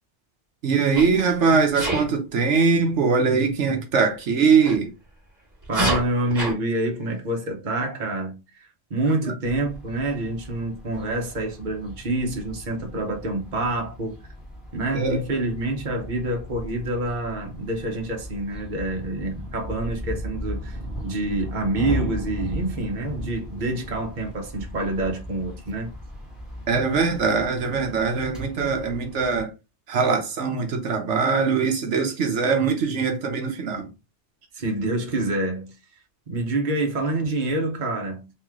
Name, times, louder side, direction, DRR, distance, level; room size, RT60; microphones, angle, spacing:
voice 1, 0.6-4.9 14.9-15.2 26.7-29.5 29.9-33.9, right 5 dB, 85° right, 1.2 m, -22 dB
Sneeze, 1.0-1.2 1.7-2.1 4.6-4.8 5.6-6.5, right 1 dB, 15° right, 1.4 m, -26 dB
voice 2, 5.7-14.2 14.7-25.9 34.5-35.7 36.3-38.3, right 2 dB, 45° right, 1.1 m, -27 dB
sound 1, 9.4-29.4, left 1 dB, ahead, 1.2 m, -37 dB
3.3 x 3.1 x 3.6 m
omnidirectional pair, 1.2 m